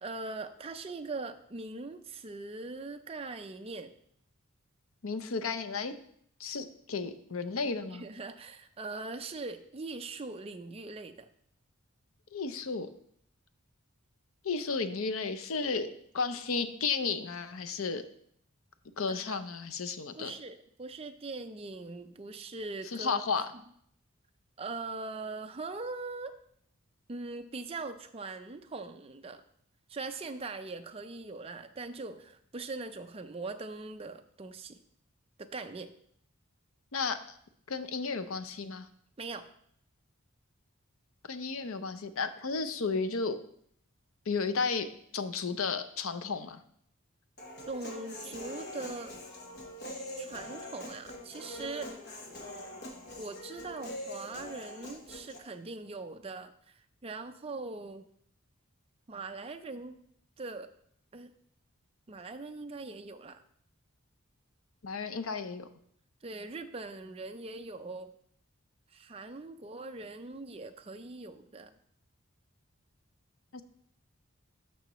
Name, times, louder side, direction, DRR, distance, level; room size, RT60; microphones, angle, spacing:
voice 1, 0.0-3.9 7.9-11.3 19.1-19.4 20.1-23.2 24.6-26.3 27.1-29.4 29.9-34.8 35.4-35.9 39.2-39.5 47.7-49.1 50.2-51.9 53.2-58.0 59.1-59.9 60.4-60.7 61.1-61.3 62.1-63.4 66.2-68.1 68.9-71.7, right 3 dB, 25° right, 7 dB, 0.5 m, -41 dB
voice 2, 5.0-5.9 6.4-8.0 12.3-12.9 14.4-18.0 19.0-20.3 22.9-23.5 36.9-37.2 37.7-38.9 41.3-43.4 44.3-44.9 45.1-46.6 64.8-65.7 73.5-73.6, left 4 dB, 70° left, 11 dB, 0.6 m, -33 dB
Human voice, 47.4-55.4, left 1 dB, 50° left, 1.3 m, -43 dB
12.5 x 5.7 x 3.1 m, 0.67 s
head